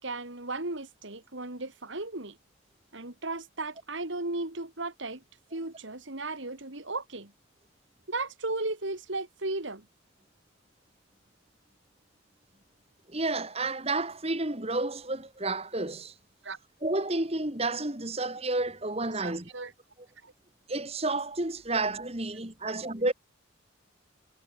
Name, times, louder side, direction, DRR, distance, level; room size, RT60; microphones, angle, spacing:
voice 1, 0.0-2.4 2.9-5.2 5.5-7.3 8.1-9.9 16.4-16.6 19.2-19.7 20.2-20.3 22.6-22.7, right 2 dB, 65° right, 2.8 m, -35 dB
voice 2, 13.1-16.1 16.8-19.5 20.7-23.1, right 2 dB, 30° right, 2.4 m, -30 dB
head